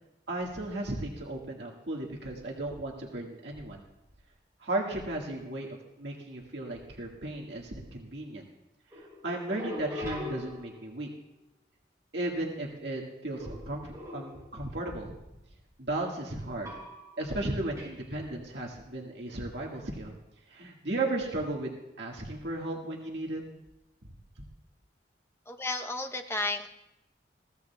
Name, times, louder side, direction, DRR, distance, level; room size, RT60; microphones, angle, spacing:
voice 1, 0.3-3.8 4.6-8.5 9.0-11.1 12.1-15.1 15.8-16.7 17.2-20.1 20.5-23.4, right 2 dB, 70° right, -1 dB, 1.8 m, -35 dB
sound 1, 8.9-11.1 13.4-14.6 16.6-17.3 17.8-18.0, left 2 dB, 15° right, 5.4 m, -41 dB
voice 2, 25.5-26.7, left 2 dB, 15° left, 5 dB, 0.8 m, -32 dB
21.5 x 15.5 x 2.3 m, 0.90 s
head